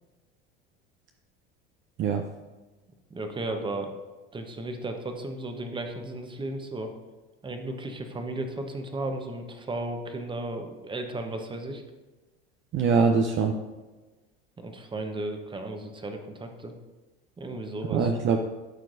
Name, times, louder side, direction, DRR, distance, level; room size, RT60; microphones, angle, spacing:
voice 1, 3.1-3.9 4.3-6.9 7.4-11.8 14.6-16.7 17.4-18.1, right 2 dB, 15° right, 5 dB, 1.0 m, -34 dB
voice 2, 12.7-13.6 17.9-18.4, right 5 dB, 40° right, 4 dB, 0.6 m, -23 dB
12.5 x 4.5 x 2.6 m, 1.2 s
hypercardioid pair, 85°, 30 cm